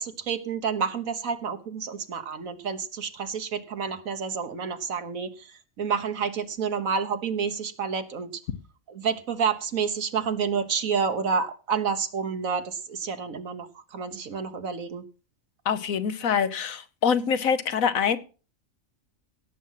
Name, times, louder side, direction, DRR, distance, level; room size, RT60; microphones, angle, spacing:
voice 1, 0.0-5.5 5.8-8.3 8.9-15.0, right 6 dB, 85° right, 9 dB, 1.7 m, -29 dB
voice 2, 15.6-18.2, left 7 dB, 90° left, 12 dB, 1.4 m, -25 dB
17.0 x 7.4 x 5.7 m, 0.37 s
omnidirectional pair, 1.4 m